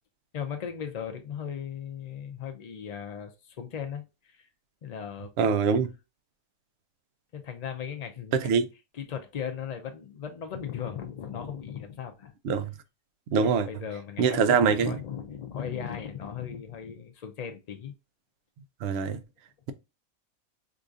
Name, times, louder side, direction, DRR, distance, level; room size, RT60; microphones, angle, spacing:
voice 1, 0.3-4.5 4.8-5.3 7.3-8.6 8.9-12.3 13.4-17.9, left 8 dB, 85° left, 0.3 m, -37 dB
voice 2, 5.4-5.9 8.3-8.6 12.4-12.7 13.3-13.7 14.2-15.0 18.8-19.2, right 6 dB, 65° right, 0.7 m, -23 dB
4.8 x 2.6 x 2.4 m
omnidirectional pair, 1.4 m